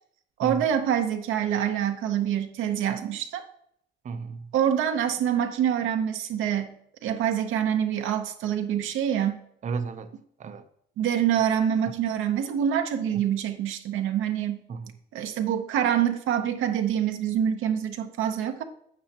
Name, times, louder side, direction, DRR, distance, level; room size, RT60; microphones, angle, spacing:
voice 1, 0.4-3.4 4.5-9.4 11.0-14.6 15.1-18.6, right 9 dB, 85° right, 7 dB, 0.8 m, -26 dB
voice 2, 4.0-4.5 9.6-10.7 13.1-13.2 14.7-14.9, right 5 dB, 40° right, 10 dB, 0.6 m, -34 dB
9.4 x 7.6 x 2.8 m, 0.70 s
cardioid pair, 90°, 20 cm